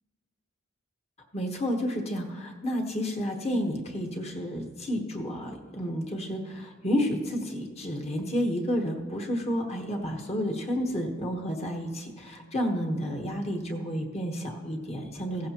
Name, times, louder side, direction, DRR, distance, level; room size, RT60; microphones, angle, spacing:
voice 1, 1.3-15.5, equal, 30° left, 2 dB, 1.1 m, -31 dB
15.5 x 15.0 x 2.9 m, 1.5 s
head